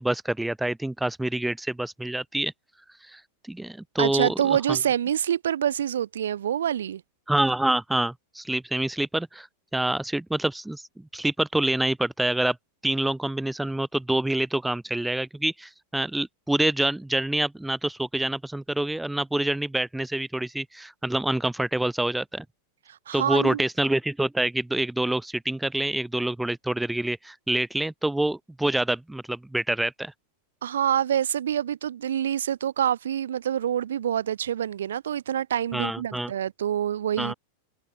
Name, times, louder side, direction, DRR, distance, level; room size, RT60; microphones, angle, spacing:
voice 1, 0.0-2.5 3.1-3.2 3.5-4.3 4.7-4.8 7.3-9.5 9.7-10.8 11.1-12.6 12.8-22.4 23.1-30.1 35.7-36.3 37.2-37.3, right 1 dB, 5° right, 0.9 m, -26 dB
voice 2, 4.0-7.0 22.9-23.6 30.6-37.3, right 10 dB, 65° right, 1.5 m, -26 dB
figure-of-eight pair, 90°, 0 cm